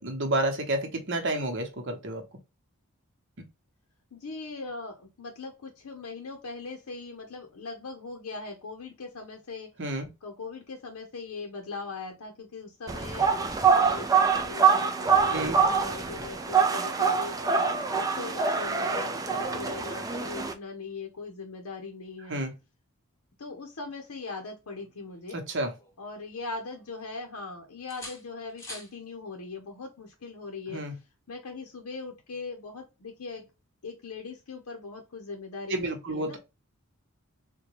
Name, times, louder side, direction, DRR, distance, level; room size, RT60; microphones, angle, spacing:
voice 1, 0.0-2.2 9.8-10.1 15.3-15.6 22.3-22.5 25.3-25.7 30.7-30.9 35.7-36.4, right 1 dB, 55° right, 0.9 m, -30 dB
voice 2, 4.1-9.7 10.2-17.4 17.9-22.4 23.4-25.4 26.0-30.8 31.3-33.5 33.8-36.4, left 3 dB, 80° left, 0.7 m, -40 dB
sound 1, 12.9-20.5, right 5 dB, 15° right, 0.4 m, -25 dB
sound 2, 24.8-26.3 26.7-27.5 27.9-29.0 30.8-31.0, left 1 dB, 15° left, 1.0 m, -47 dB
3.8 x 2.2 x 2.9 m
head